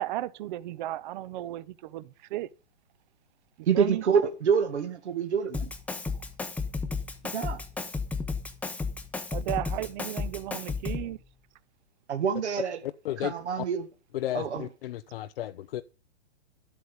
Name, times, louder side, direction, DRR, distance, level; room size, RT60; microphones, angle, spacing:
voice 1, 0.0-2.5 3.6-4.0 9.3-11.2, right 14 dB, 45° right, 0.7 m, -34 dB
voice 2, 3.7-5.7 7.3-7.6 12.1-12.8 13.2-13.9 14.3-14.7, right 6 dB, 75° right, 1.9 m, -26 dB
Drum kit, 5.5-11.1, left 4 dB, 5° left, 0.8 m, -33 dB
voice 3, 12.8-13.7 14.1-15.8, left 13 dB, 55° left, 0.6 m, -34 dB
11.5 x 8.3 x 5.1 m
hypercardioid pair, 135°, 34 cm